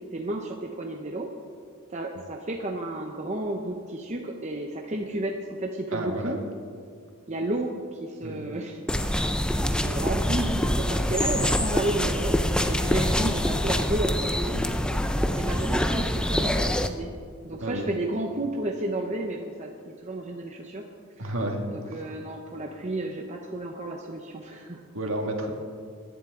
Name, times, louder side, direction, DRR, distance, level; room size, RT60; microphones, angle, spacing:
voice 1, 0.1-1.3 1.9-6.4 7.3-9.3 9.6-12.4 12.7-14.6 15.4-17.1 17.4-20.8 21.2-21.3 21.7-24.9, right 1 dB, 30° right, 1 dB, 0.8 m, -32 dB
voice 2, 5.9-6.4 8.2-8.5 14.5-14.7 17.6-17.8 21.2-21.6 21.9-22.1 24.9-25.5, right 1 dB, 60° right, 2 dB, 1.9 m, -31 dB
sound 1, 8.9-16.9, equal, 5° left, 0.4 m, -25 dB
23.0 x 11.0 x 3.8 m, 2.2 s
head